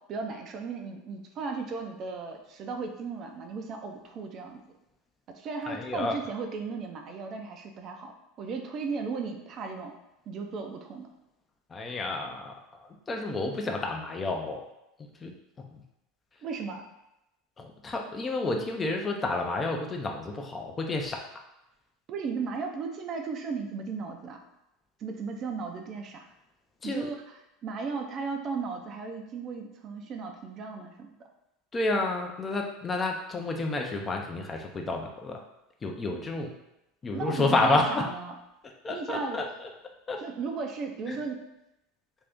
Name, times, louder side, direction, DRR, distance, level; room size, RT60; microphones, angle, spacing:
voice 1, 0.0-4.6 5.3-9.9 10.3-11.1 16.4-16.8 22.1-24.4 25.0-26.3 26.8-31.1 37.1-38.3 38.9-39.4 40.2-41.5, right 4 dB, 45° right, 3 dB, 0.4 m, -36 dB
voice 2, 5.7-6.2 11.7-14.7 15.0-15.8 17.6-21.2 26.8-27.1 31.7-35.4 35.8-36.5 37.0-38.1 38.8-39.7 40.1-40.2 41.1-41.2, left 2 dB, 25° left, 2 dB, 0.5 m, -30 dB
2.6 x 2.4 x 3.5 m, 0.89 s
hypercardioid pair, 90°, 0 cm